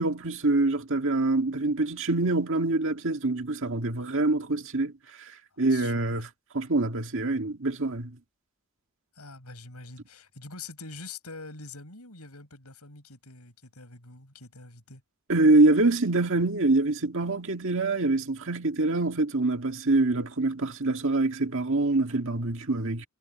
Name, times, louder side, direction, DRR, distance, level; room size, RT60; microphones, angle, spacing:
voice 1, 0.0-4.9 5.6-6.3 6.5-8.1 15.3-23.1, right 2 dB, 60° right, 2.0 m, -25 dB
voice 2, 5.5-6.2 9.2-15.0, left 3 dB, 90° left, 7.6 m, -45 dB
head